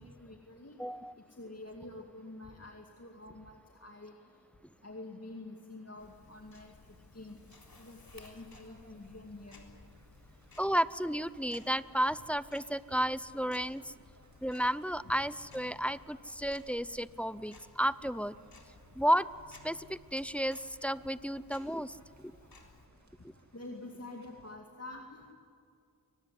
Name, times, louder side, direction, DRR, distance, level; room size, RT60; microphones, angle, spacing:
voice 1, 0.0-0.8 1.2-4.1 4.8-7.4 7.8-9.7 15.0-15.1 23.5-25.3, left 2 dB, 35° left, 1 dB, 2.3 m, -47 dB
voice 2, 0.8-1.1 10.6-13.9 14.4-18.4 18.9-19.3 19.6-22.3 23.2-23.3, equal, 5° left, 16 dB, 0.6 m, -32 dB
Tick-tock, 6.0-22.9, left 3 dB, 60° left, 3.9 m, -58 dB
sound 1, 7.5-24.6, right 2 dB, 40° right, 2.3 m, -64 dB
24.0 x 19.0 x 9.9 m, 2.3 s
wide cardioid pair, 65°, 41 cm